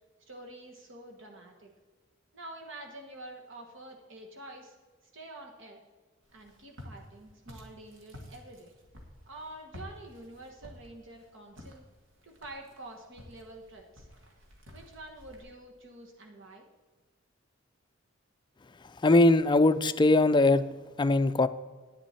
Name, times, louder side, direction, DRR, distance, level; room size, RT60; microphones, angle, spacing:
voice 1, 0.3-1.7 2.3-4.8 5.1-5.8 6.3-8.7 9.3-11.8 12.2-14.1 14.7-16.7, right 1 dB, 65° right, 1 dB, 1.4 m, -47 dB
Walk footsteps, 6.2-15.4, left 1 dB, 80° right, 2.0 m, -51 dB
voice 2, 18.8-20.7 21.0-21.5, left 2 dB, 25° left, 10 dB, 0.4 m, -21 dB
10.5 x 9.8 x 4.4 m, 1.4 s
head